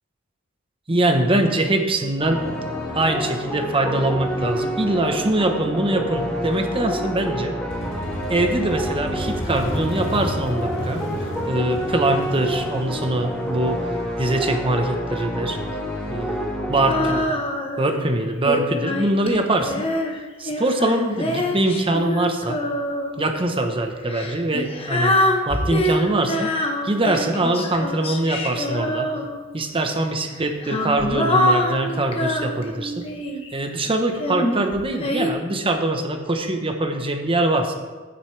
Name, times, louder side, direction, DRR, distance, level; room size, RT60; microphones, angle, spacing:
voice 1, 0.9-2.4 2.9-7.5 8.3-11.0 11.5-13.9 14.2-15.6 16.1-17.3 17.8-19.9 20.4-22.6 23.2-26.5 26.8-29.1 29.5-33.1 33.5-37.7, right 1 dB, 25° right, 5 dB, 1.0 m, -23 dB
sound 1, 2.2-17.2, equal, 5° left, 1.5 m, -28 dB
Motorcycle, 7.7-15.3, equal, 80° left, 2.2 m, -33 dB
Female singing, 16.9-17.9 18.4-23.3 24.0-29.6 30.4-33.5 34.2-35.3, left 1 dB, 30° left, 1.0 m, -25 dB
12.0 x 9.7 x 3.3 m, 1.3 s
head